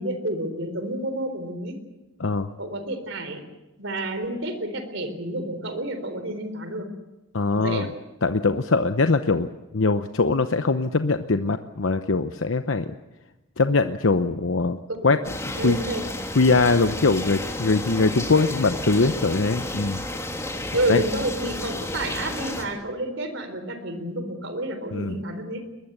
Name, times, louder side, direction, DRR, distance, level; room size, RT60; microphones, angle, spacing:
voice 1, 0.0-1.8 2.6-3.4 3.8-6.9 7.5-7.9 14.9-15.1 15.5-16.0 20.7-25.6, right 1 dB, 70° right, 9 dB, 4.1 m, -29 dB
voice 2, 2.2-2.5 7.3-7.9 8.2-12.9 13.6-14.8 15.0-15.2 15.4-15.8 16.3-20.0 20.9-21.0 24.9-25.2, left 3 dB, 80° left, 9 dB, 0.9 m, -22 dB
sound 1, 15.2-22.6, left 1 dB, 15° left, 3.1 m, -32 dB
22.0 x 21.0 x 8.1 m, 1.1 s
head